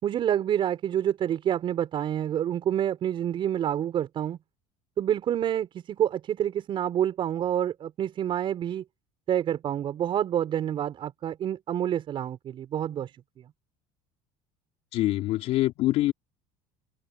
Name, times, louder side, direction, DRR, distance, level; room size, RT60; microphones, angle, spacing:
voice 1, 0.0-4.4 5.0-8.8 9.3-13.5, right 10 dB, 45° right, 6.0 m, -28 dB
voice 2, 14.9-16.1, left 16 dB, 60° left, 3.7 m, -24 dB
open air
cardioid pair, 120°, 12 cm